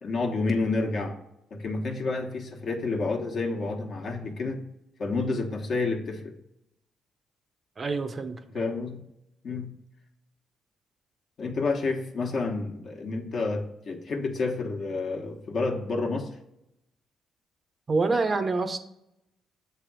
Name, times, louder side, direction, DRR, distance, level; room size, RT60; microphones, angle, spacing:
voice 1, 0.0-1.1 1.5-4.6 5.0-6.2 8.5-9.0 9.4-9.7 11.4-16.3, left 3 dB, 55° left, 2 dB, 1.2 m, -29 dB
voice 2, 7.8-8.4 17.9-18.8, right 3 dB, 35° right, 9 dB, 0.7 m, -26 dB
7.0 x 3.4 x 6.1 m, 0.82 s
cardioid pair, 90°, 0 cm